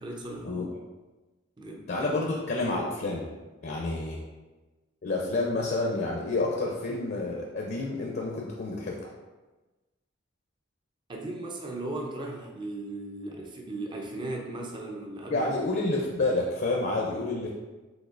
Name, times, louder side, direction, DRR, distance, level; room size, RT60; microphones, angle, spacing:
voice 1, 0.0-0.7 1.6-1.9 11.1-15.5, right 2 dB, 25° right, 0 dB, 0.5 m, -37 dB
voice 2, 1.9-3.3 3.6-4.2 5.0-9.1 15.3-17.5, left 2 dB, 50° left, -1 dB, 0.5 m, -29 dB
5.2 x 3.7 x 2.5 m, 1.2 s
head